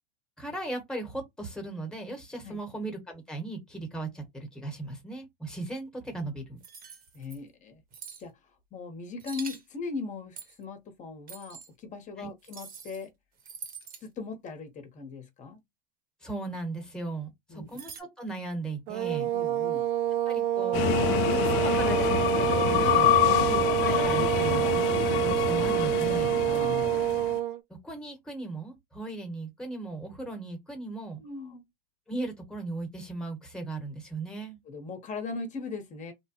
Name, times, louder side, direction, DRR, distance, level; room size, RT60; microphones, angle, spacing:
voice 1, 0.4-6.6 12.2-12.3 16.2-19.3 20.3-20.9 21.3-26.4 27.8-31.2 32.1-34.6, right 2 dB, 5° left, 1.2 m, -37 dB
sound 1, 6.6-7.4 7.9-8.2 9.2-9.6 10.4-10.6 11.3-11.7 12.4-13.1 13.4-14.0 17.7-18.0, right 7 dB, 30° right, 0.9 m, -44 dB
voice 2, 7.1-7.8 8.2-8.4 8.7-13.1 14.0-15.6 17.5-17.8 19.3-19.9 23.2-23.5 26.4-27.0 31.2-31.6 34.7-36.1, left 4 dB, 25° left, 1.0 m, -39 dB
sound 2, 18.9-27.6, right 12 dB, 60° right, 0.5 m, -27 dB
sound 3, 20.7-27.4, left 12 dB, 65° left, 0.5 m, -27 dB
3.2 x 2.2 x 2.9 m
hypercardioid pair, 110°, 29 cm